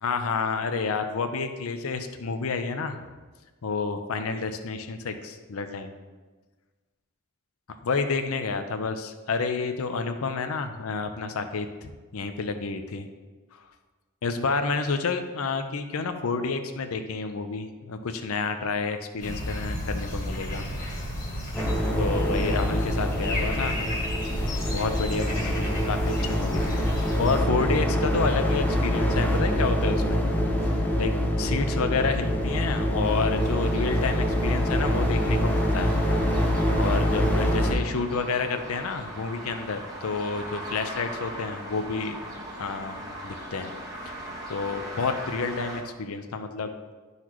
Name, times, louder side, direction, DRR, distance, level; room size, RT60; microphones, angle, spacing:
voice 1, 0.0-3.0 3.6-5.9 7.8-13.0 14.2-20.7 22.0-23.8 24.7-30.2 30.7-36.0 36.8-42.2 42.6-43.0 43.2-43.7 44.5-46.9, left 4 dB, 70° left, 7 dB, 0.6 m, -29 dB
sound 1, 19.2-27.4, left 1 dB, 40° left, 1.5 m, -32 dB
sound 2, 21.5-37.7, equal, 10° left, 0.6 m, -25 dB
sound 3, 33.0-45.8, right 1 dB, 15° right, 1.3 m, -39 dB
11.5 x 4.0 x 3.1 m, 1.3 s
head